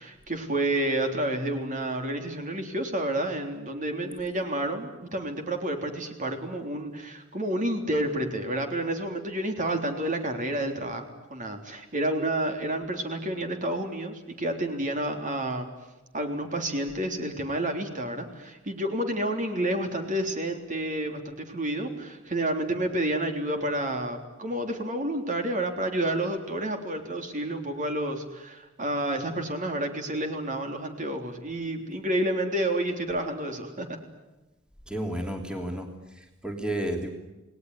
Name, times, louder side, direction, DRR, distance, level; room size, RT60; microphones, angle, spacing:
voice 1, 0.0-15.7 16.1-34.0, right 1 dB, 40° right, 4 dB, 3.5 m, -30 dB
voice 2, 34.9-35.9 36.4-37.1, right 1 dB, 5° right, 3 dB, 3.1 m, -31 dB
29.5 x 19.5 x 9.8 m, 1.1 s
head